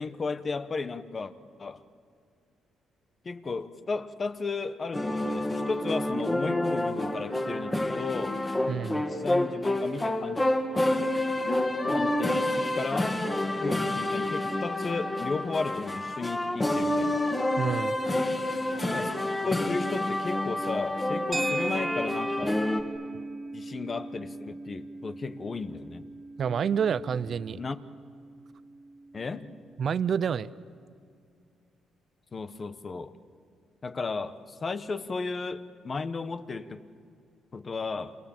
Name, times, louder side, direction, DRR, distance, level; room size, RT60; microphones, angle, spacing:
voice 1, 0.0-1.3 1.6-1.8 3.2-8.4 9.1-10.4 11.9-13.2 13.6-17.2 18.9-19.1 19.4-22.6 23.5-26.1 27.6-27.8 29.1-29.5 32.3-33.2 33.8-36.8 37.5-38.2, left 4 dB, 35° left, 1.2 m, -34 dB
sound 1, 4.9-22.8, left 1 dB, 20° left, 2.5 m, -28 dB
voice 2, 8.7-9.0 17.6-18.0 26.4-27.6 29.8-30.5, right 7 dB, 55° right, 0.6 m, -28 dB
sound 2, 21.3-29.7, right 2 dB, 20° right, 1.6 m, -38 dB
28.5 x 27.5 x 7.4 m
cardioid pair, 90°, 0 cm